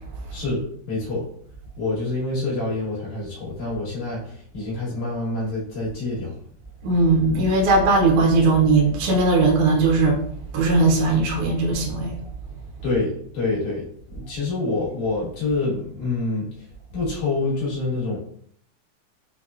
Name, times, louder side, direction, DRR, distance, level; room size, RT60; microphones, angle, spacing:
voice 1, 0.3-1.3 1.8-6.4 12.8-16.6 16.9-18.2, left 3 dB, 80° left, -6 dB, 2.9 m, -27 dB
voice 2, 6.8-10.2 10.5-12.2, right 3 dB, 75° right, -1 dB, 1.3 m, -18 dB
6.0 x 2.2 x 2.3 m, 0.63 s
omnidirectional pair, 3.3 m